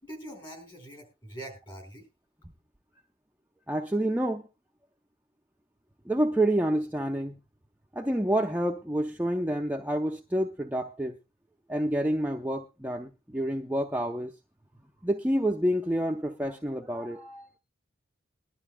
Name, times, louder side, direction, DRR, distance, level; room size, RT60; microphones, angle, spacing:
voice 1, 0.0-2.1, right 1 dB, 30° left, 4.6 m, -43 dB
voice 2, 3.7-4.4 6.1-7.4 8.0-11.2 11.7-14.3 15.0-17.5, right 1 dB, 10° right, 0.6 m, -28 dB
21.5 x 12.0 x 2.2 m
head